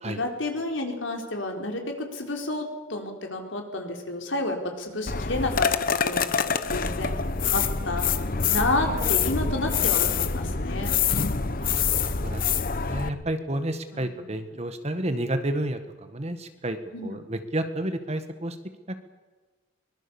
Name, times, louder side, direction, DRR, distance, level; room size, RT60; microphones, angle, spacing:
voice 1, 0.0-8.1 8.5-10.9 13.9-14.2 16.9-17.2, left 2 dB, 75° left, 3 dB, 4.2 m, -30 dB
sound 1, 5.1-13.1, left 6 dB, 45° left, 1.0 m, -25 dB
voice 2, 11.6-18.6 18.9-19.0, right 1 dB, 35° right, 8 dB, 1.6 m, -31 dB
23.5 x 21.5 x 7.1 m, 1.3 s
head